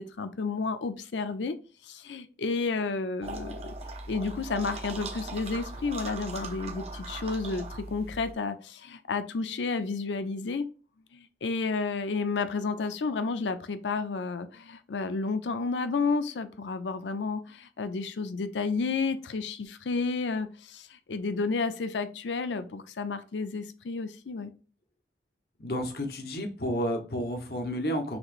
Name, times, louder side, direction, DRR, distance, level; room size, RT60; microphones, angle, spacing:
voice 1, 0.0-1.6 1.8-3.7 4.1-7.7 7.9-10.7 11.1-24.5, left 4 dB, 90° left, 11 dB, 0.5 m, -31 dB
sound 1, 3.2-8.3, right 2 dB, 35° right, 0.8 m, -39 dB
voice 2, 25.6-28.2, equal, 60° left, 4 dB, 1.0 m, -31 dB
6.2 x 3.0 x 2.4 m, 0.36 s
head